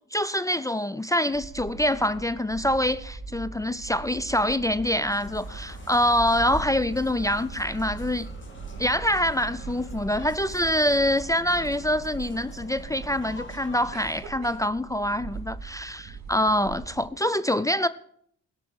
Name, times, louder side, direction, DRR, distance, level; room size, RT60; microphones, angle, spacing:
voice 1, 0.1-8.3 8.8-17.9, left 1 dB, 10° left, 0.4 m, -25 dB
sound 1, 1.3-17.1, right 4 dB, 65° right, 2.5 m, -41 dB
sound 2, 5.1-13.9, left 2 dB, 40° left, 2.6 m, -44 dB
17.0 x 6.1 x 6.3 m
cardioid pair, 90°, 30 cm